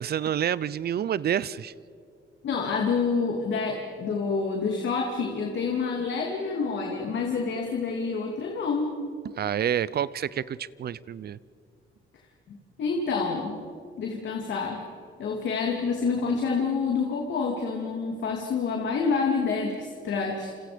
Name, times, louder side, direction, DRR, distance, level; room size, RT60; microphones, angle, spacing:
voice 1, 0.0-1.7 9.4-11.4, right 9 dB, 55° right, 20 dB, 0.7 m, -28 dB
voice 2, 2.4-8.9 12.8-13.7 14.0-14.8 15.2-20.5, left 5 dB, 65° left, 1 dB, 2.8 m, -28 dB
28.5 x 27.5 x 5.2 m, 2.4 s
cardioid pair, 90°, 20 cm